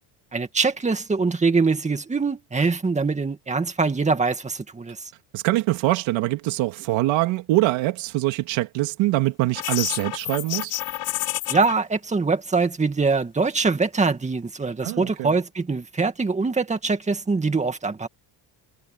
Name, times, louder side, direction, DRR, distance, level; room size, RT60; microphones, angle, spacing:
voice 1, 0.3-5.1 11.5-18.1, right 4 dB, 15° right, 2.2 m, -23 dB
voice 2, 5.3-10.7 14.8-15.3, right 18 dB, 75° right, 2.6 m, -23 dB
sound 1, 9.5-11.7, left 17 dB, 65° left, 4.8 m, -29 dB
cardioid pair, 140°, 47 cm